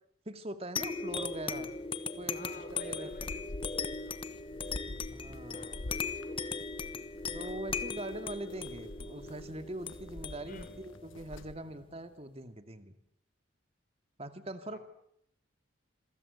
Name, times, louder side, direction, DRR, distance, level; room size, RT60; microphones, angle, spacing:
voice 1, 0.3-1.7 2.2-3.1 5.1-5.7 7.3-12.9 14.2-14.8, right 1 dB, 30° right, 9 dB, 2.2 m, -42 dB
sound 1, 0.8-11.8, left 5 dB, 25° left, 1.2 m, -39 dB
voice 2, 2.3-3.4 3.9-4.2 5.5-6.7 8.4-8.7 10.4-10.7 14.7-14.8, left 1 dB, 45° left, 10 dB, 4.3 m, -51 dB
sound 2, 2.7-11.5, left 1 dB, 90° left, 1.2 m, -47 dB
27.0 x 23.0 x 8.1 m, 0.72 s
head